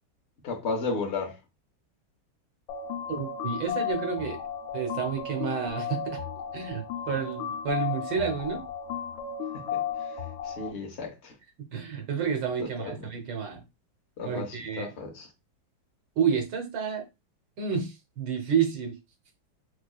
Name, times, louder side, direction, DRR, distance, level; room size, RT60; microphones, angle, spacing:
voice 1, 0.4-1.4 9.7-9.8 10.4-11.3 12.8-13.0 14.2-15.3, left 4 dB, 55° left, 0.8 m, -33 dB
sound 1, 2.7-10.7, left 7 dB, 85° left, 1.4 m, -34 dB
voice 2, 3.1-4.4 4.7-6.2 6.5-8.6 11.7-13.6 14.2-14.9 16.2-17.0 17.6-19.0, right 7 dB, 70° right, 1.6 m, -30 dB
4.8 x 2.3 x 2.3 m
omnidirectional pair, 2.1 m